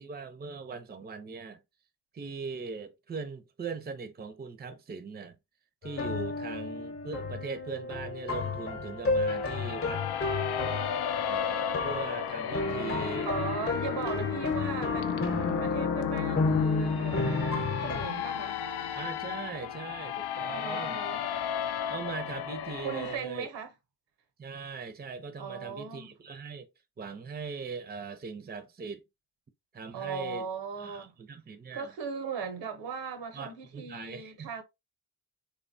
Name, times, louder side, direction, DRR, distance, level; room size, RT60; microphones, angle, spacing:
voice 1, 0.0-1.6 2.1-5.4 5.8-10.0 11.3-13.3 18.9-21.0 21.9-23.5 24.4-26.7 27.0-29.0 29.7-30.5 30.8-31.9 33.3-34.5, right 5 dB, 25° right, 0.6 m, -40 dB
sound 1, 5.8-18.1, left 3 dB, 30° left, 0.9 m, -32 dB
sound 2, 9.3-23.2, left 9 dB, 65° left, 0.5 m, -34 dB
voice 2, 13.2-18.6 20.5-21.3 22.8-23.7 25.4-26.1 29.9-31.1 31.7-34.6, right 5 dB, 85° right, 0.8 m, -38 dB
3.0 x 2.2 x 2.6 m
supercardioid pair, 55°, 42 cm